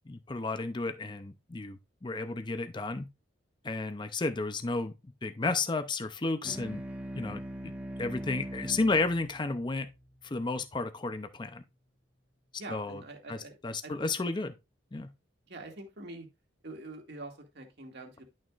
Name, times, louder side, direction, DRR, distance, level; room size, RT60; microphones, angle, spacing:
voice 1, 0.1-3.1 3.6-4.9 5.2-6.8 7.2-7.7 8.0-9.9 10.2-11.6 12.7-13.0 13.3-14.5 14.9-15.1, left 3 dB, 25° left, 0.5 m, -32 dB
sound 1, 6.4-11.3, right 1 dB, 5° right, 1.2 m, -42 dB
voice 2, 12.6-13.6 13.8-14.1 15.5-16.3 16.6-18.2, right 2 dB, 60° right, 1.9 m, -45 dB
11.0 x 6.3 x 2.4 m
head